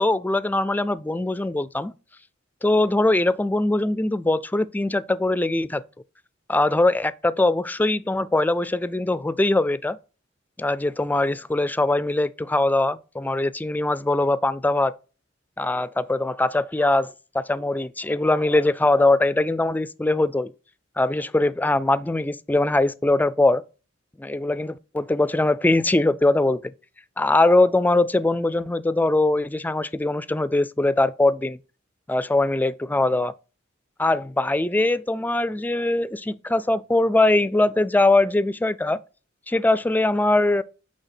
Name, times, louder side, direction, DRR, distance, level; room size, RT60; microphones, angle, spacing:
voice 1, 0.0-1.9 2.6-5.8 6.5-10.0 10.6-14.9 15.6-20.5 21.0-23.6 24.2-26.7 27.2-31.6 32.1-33.3 34.0-39.0 39.5-40.6, left 2 dB, 10° left, 0.3 m, -21 dB
8.1 x 3.4 x 5.8 m
head